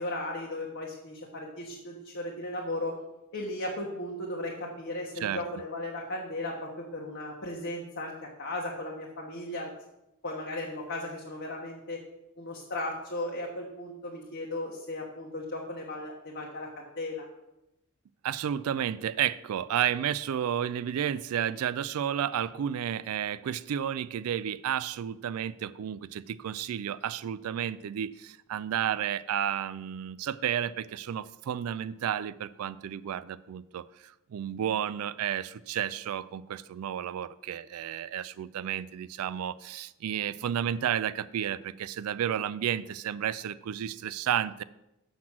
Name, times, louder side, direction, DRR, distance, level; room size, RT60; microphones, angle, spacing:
voice 1, 0.0-2.9 3.3-9.7 10.2-12.0 12.4-17.3, left 1 dB, 55° left, -2 dB, 1.3 m, -36 dB
voice 2, 18.2-44.6, right 9 dB, 75° right, 16 dB, 0.3 m, -32 dB
7.3 x 6.0 x 6.1 m, 0.91 s
head